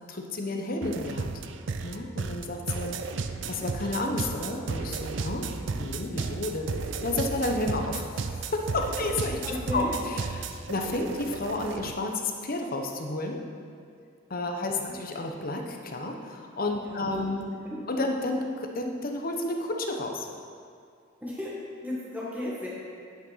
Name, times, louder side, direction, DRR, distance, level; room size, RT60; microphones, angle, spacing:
voice 1, 0.1-1.3 1.8-3.0 3.5-5.5 5.8-13.4 14.3-17.5 17.9-20.3, left 2 dB, 50° left, 2 dB, 1.0 m, -31 dB
sound 1, 0.8-11.9, right 4 dB, 65° right, 0.5 m, -34 dB
voice 2, 9.4-9.9 14.5-15.0 16.8-17.3 17.6-17.8 21.2-22.7, left 1 dB, 10° right, -7 dB, 1.6 m, -35 dB
10.0 x 6.2 x 5.7 m, 2.3 s
head